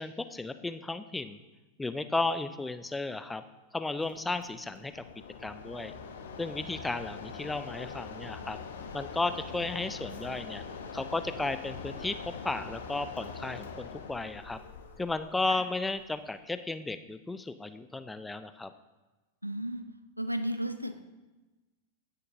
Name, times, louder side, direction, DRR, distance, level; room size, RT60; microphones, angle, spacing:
voice 1, 0.0-1.4 1.8-3.4 3.7-5.0 5.4-5.9 6.4-8.6 8.9-10.6 10.9-12.2 12.4-14.6 15.0-18.7, left 3 dB, 10° left, 11 dB, 0.4 m, -34 dB
Mechanisms, 4.0-16.4, left 5 dB, 65° left, 0.8 m, -43 dB
voice 2, 19.4-19.8 20.2-21.1, equal, 90° right, 9 dB, 0.5 m, -34 dB
16.0 x 6.5 x 2.6 m, 1.2 s
figure-of-eight pair, 90°, 0 cm